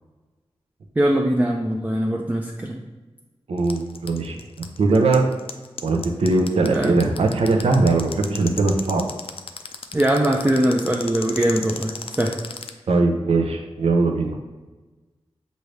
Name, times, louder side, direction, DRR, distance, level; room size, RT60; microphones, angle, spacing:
voice 1, 1.0-2.8 6.7-6.9 9.9-12.3, right 1 dB, 15° right, 0 dB, 0.4 m, -21 dB
voice 2, 3.5-4.4 4.8-5.2 5.8-9.1 12.9-14.4, right 3 dB, 80° right, 3 dB, 0.6 m, -20 dB
sound 1, 3.6-12.7, left 6 dB, 65° left, 0.4 m, -33 dB
6.3 x 2.7 x 3.2 m, 1.2 s
wide cardioid pair, 75°, 10 cm